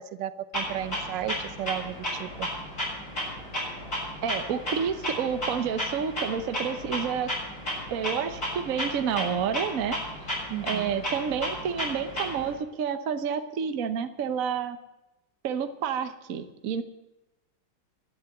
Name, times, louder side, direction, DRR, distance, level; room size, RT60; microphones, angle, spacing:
voice 1, 0.0-2.5 10.5-10.9, right 11 dB, 80° right, 15 dB, 1.4 m, -34 dB
Clock, 0.5-12.5, equal, 40° left, 7.5 m, -34 dB
voice 2, 4.2-7.3 7.9-10.0 10.6-14.8 15.4-16.8, right 7 dB, 55° right, 9 dB, 1.2 m, -29 dB
12.0 x 11.0 x 7.8 m, 0.96 s
omnidirectional pair, 2.0 m